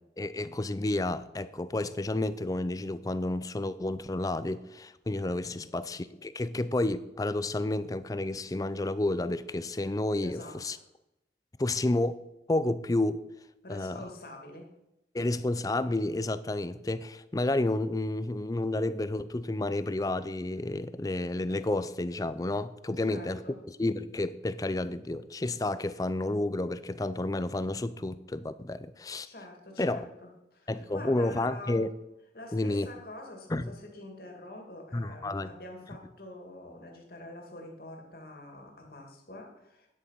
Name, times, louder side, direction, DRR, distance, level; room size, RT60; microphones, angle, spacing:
voice 1, 0.2-10.8 11.6-12.2 12.5-13.2 13.7-14.0 15.1-23.4 23.8-29.3 29.8-30.0 30.7-31.9 32.5-32.9 33.5-33.7 34.9-35.5, left 2 dB, 20° left, 15 dB, 0.4 m, -30 dB
voice 2, 10.2-10.8 13.6-14.7 23.0-23.6 29.2-31.9 32.3-39.9, left 1 dB, 55° left, 2 dB, 2.3 m, -46 dB
9.7 x 8.2 x 5.7 m, 0.90 s
head